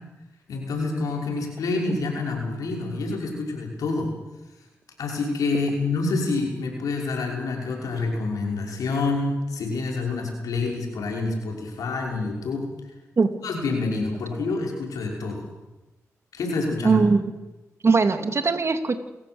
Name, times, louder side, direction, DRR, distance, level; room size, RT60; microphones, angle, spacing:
voice 1, 0.5-4.1 5.0-12.7 13.4-15.4 16.3-17.0, left 3 dB, 85° left, 0 dB, 5.8 m, -27 dB
voice 2, 16.8-17.2 17.8-19.0, right 4 dB, 50° right, 7 dB, 2.8 m, -20 dB
28.5 x 14.5 x 8.1 m, 1.0 s
cardioid pair, 55°, 6 cm